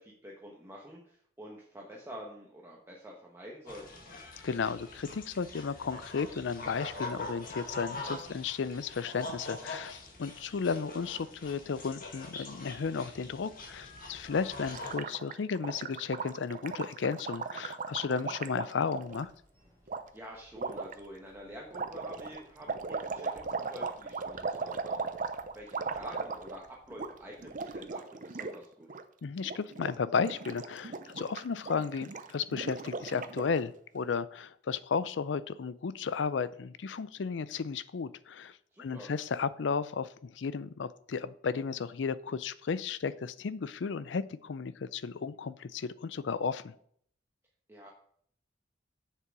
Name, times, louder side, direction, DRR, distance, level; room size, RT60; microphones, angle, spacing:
voice 1, 0.0-4.0 20.1-25.2 25.5-29.0 38.7-39.1 47.7-47.9, equal, 15° right, -2 dB, 1.1 m, -48 dB
sound 1, 3.7-14.9, left 2 dB, 50° left, 1.7 m, -44 dB
voice 2, 4.4-19.3 29.2-46.7, left 5 dB, 80° left, 16 dB, 0.5 m, -34 dB
Gurgling, 14.6-19.2 19.9-20.0 20.6-20.9 21.7-26.7 26.9-27.1 27.4-28.6 28.8-29.0 29.4-29.9 30.2-33.6, right 4 dB, 45° right, 0.6 m, -38 dB
sound 2, 19.0-27.9, equal, 15° left, 3.0 m, -64 dB
7.5 x 6.8 x 4.7 m, 0.64 s
head